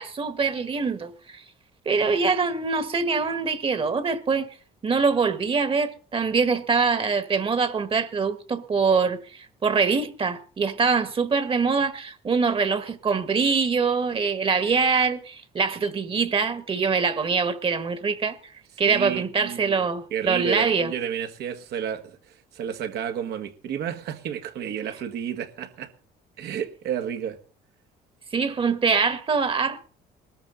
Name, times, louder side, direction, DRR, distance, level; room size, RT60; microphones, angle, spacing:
voice 1, 0.0-1.4 1.8-4.5 4.8-18.4 18.8-20.9 28.3-29.8, right 5 dB, 30° right, 1.4 m, -24 dB
voice 2, 18.8-22.2 22.5-25.9 26.4-27.4, right 9 dB, 75° right, 1.7 m, -31 dB
20.0 x 13.5 x 3.9 m
cardioid pair, 110°, 17 cm